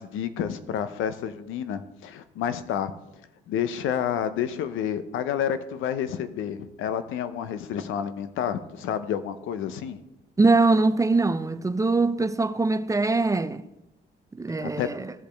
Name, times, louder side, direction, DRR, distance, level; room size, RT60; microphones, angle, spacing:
voice 1, 0.0-2.9 3.5-10.0 14.6-14.9, left 9 dB, 85° left, 0.6 m, -29 dB
voice 2, 10.4-13.6 14.3-15.1, right 3 dB, 15° right, 0.4 m, -22 dB
15.0 x 5.1 x 3.4 m
cardioid pair, 90°, 20 cm